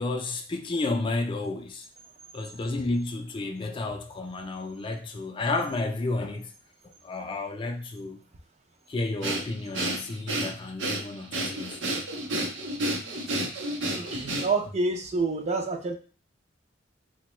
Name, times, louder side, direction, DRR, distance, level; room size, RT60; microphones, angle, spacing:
voice 1, 0.0-1.9 2.3-6.5 6.8-8.2 8.9-11.8 13.1-13.2, left 2 dB, 25° left, 0.3 m, -31 dB
Breathing, 9.2-14.7, right 1 dB, 75° right, 0.7 m, -31 dB
voice 2, 13.9-15.9, right 3 dB, 35° right, 0.4 m, -28 dB
3.8 x 2.2 x 3.0 m
head